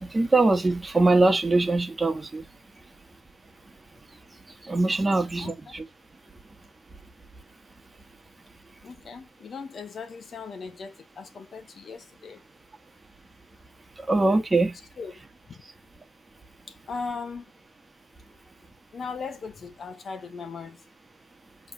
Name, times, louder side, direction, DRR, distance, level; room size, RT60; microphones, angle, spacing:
voice 1, 0.0-2.4 4.6-5.8 14.0-14.8, right 2 dB, 20° right, 1.4 m, -22 dB
voice 2, 5.4-5.7 8.8-12.4 15.0-15.1 15.5-15.6 16.7-17.5 18.3-18.4 18.9-20.9, left 5 dB, 50° left, 1.0 m, -38 dB
7.6 x 3.3 x 4.0 m
cardioid pair, 90°, 0 cm